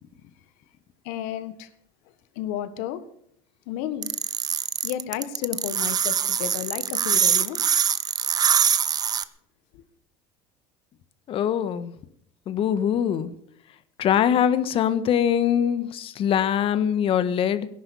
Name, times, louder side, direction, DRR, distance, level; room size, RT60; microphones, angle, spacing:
voice 1, 1.0-1.7 2.3-3.0 3.7-4.1 4.8-7.6 9.7-9.8, left 11 dB, 80° left, 1.6 m, -32 dB
sound 1, 4.0-9.2, right 8 dB, 30° right, 0.9 m, -23 dB
voice 2, 11.3-11.9 12.5-13.3 14.0-17.7, left 9 dB, 45° left, 1.4 m, -23 dB
18.0 x 11.0 x 7.1 m
cardioid pair, 125°, 13 cm